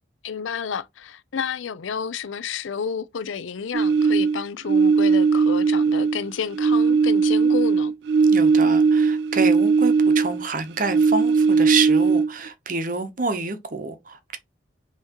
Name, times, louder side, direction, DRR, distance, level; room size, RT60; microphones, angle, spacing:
voice 1, 0.2-7.9, left 6 dB, 90° left, 0.5 m, -30 dB
sound 1, 3.7-6.3 6.5-10.5 10.8-12.5, right 5 dB, 60° right, 0.3 m, -19 dB
voice 2, 8.3-14.4, right 4 dB, 45° right, 0.7 m, -27 dB
5.7 x 2.9 x 2.9 m
head